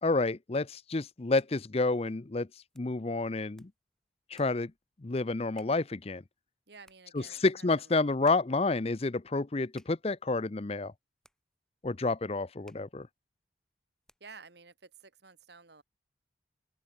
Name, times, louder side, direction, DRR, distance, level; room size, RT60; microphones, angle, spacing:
voice 1, 0.0-2.5 2.8-3.7 4.3-4.7 5.0-6.2 7.1-10.9 11.8-13.1, left 3 dB, 30° left, 0.6 m, -29 dB
sound 1, 1.2-14.5, left 1 dB, 5° left, 6.3 m, -68 dB
voice 2, 6.7-8.1 14.2-15.8, right 4 dB, 60° right, 1.8 m, -53 dB
open air
head